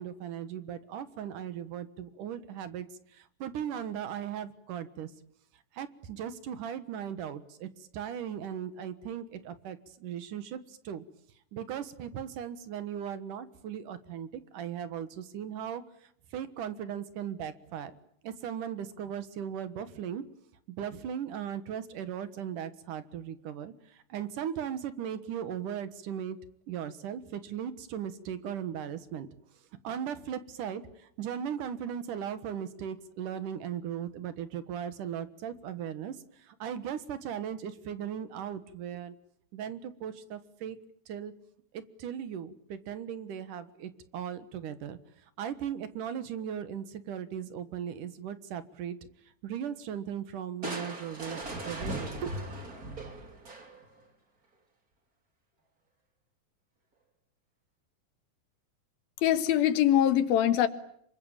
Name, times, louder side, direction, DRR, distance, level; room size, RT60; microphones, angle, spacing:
voice 1, 0.0-2.9 3.1-5.1 5.7-11.0 11.5-15.8 16.3-17.9 18.2-20.2 20.7-26.4 26.7-29.3 29.8-39.1 39.5-40.8 41.1-41.3 41.7-45.0 45.4-49.0 49.4-52.3, right 9 dB, 65° right, 13 dB, 2.8 m, -38 dB
Crushing, 50.6-54.0, right 1 dB, 25° right, 3.2 m, -38 dB
voice 2, 59.2-60.7, left 11 dB, 90° left, 11 dB, 3.4 m, -23 dB
27.0 x 24.0 x 8.8 m, 0.68 s
omnidirectional pair, 4.1 m